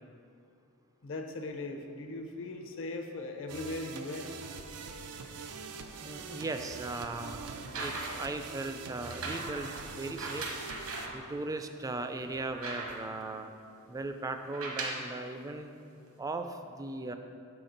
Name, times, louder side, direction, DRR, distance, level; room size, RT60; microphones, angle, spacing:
voice 1, 1.0-4.3, left 2 dB, 60° left, 4 dB, 0.7 m, -39 dB
sound 1, 3.5-11.1, right 4 dB, 90° right, 0.5 m, -44 dB
voice 2, 6.0-10.5 11.1-13.5 13.9-15.7 16.2-17.1, right 2 dB, 15° right, 7 dB, 0.3 m, -38 dB
sound 2, 7.5-8.4 9.0-11.2 11.8-11.9 12.2-13.2 14.4-15.1 16.1-16.2, right 2 dB, 70° right, 1.0 m, -39 dB
6.6 x 5.9 x 3.9 m, 2.5 s
head